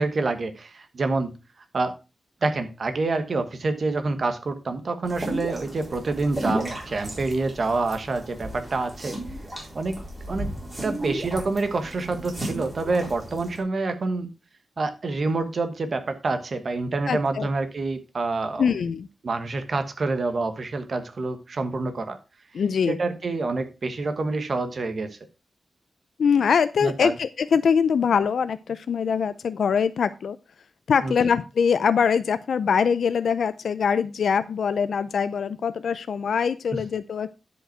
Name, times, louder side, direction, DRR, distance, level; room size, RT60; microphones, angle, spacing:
voice 1, 0.0-1.3 1.7-2.0 2.4-9.2 9.7-10.0 10.3-10.5 10.8-14.3 14.8-18.7 19.2-22.2 22.9-25.1 26.8-27.2 31.0-31.1, right 3 dB, 45° right, 1.2 m, -27 dB
sound 1, 5.0-13.6, right 1 dB, 15° right, 4.0 m, -34 dB
voice 2, 17.1-17.5 18.6-19.1 22.5-23.0 26.2-30.4 30.9-37.4, left 6 dB, 85° left, 0.4 m, -23 dB
10.0 x 5.3 x 4.4 m
wide cardioid pair, 160°, 0 cm